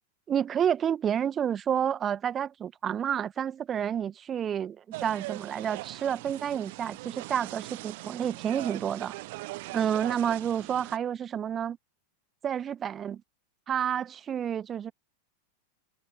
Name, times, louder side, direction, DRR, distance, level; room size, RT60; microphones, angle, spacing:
voice 1, 0.3-9.1 9.7-11.8 12.4-13.2 13.7-14.9, right 9 dB, 25° right, 1.6 m, -29 dB
sound 1, 4.9-11.0, right 22 dB, 50° right, 1.1 m, -41 dB
figure-of-eight pair, 90°, 0 cm